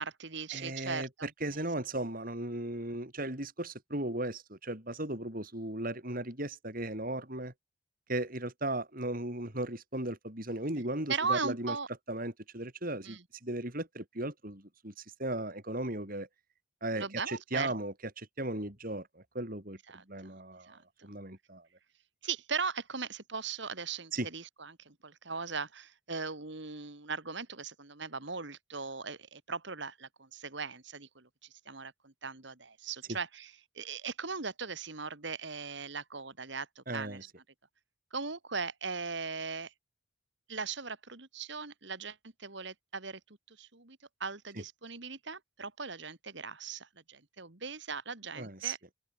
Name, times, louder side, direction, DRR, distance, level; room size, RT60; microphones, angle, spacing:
voice 1, 0.0-1.3 11.1-11.9 13.0-13.2 16.9-17.7 19.9-20.0 20.7-21.1 22.2-31.3 31.7-33.5 33.8-37.2 38.1-39.7 40.5-43.2 43.5-48.9, right 5 dB, 60° right, 2.1 m, -39 dB
voice 2, 0.5-7.5 8.1-11.7 12.1-14.9 15.2-16.3 16.8-21.7 24.1-24.3 33.1-33.2 36.9-37.2 44.6-44.7 48.4-48.8, right 1 dB, 45° right, 4.6 m, -36 dB
open air
head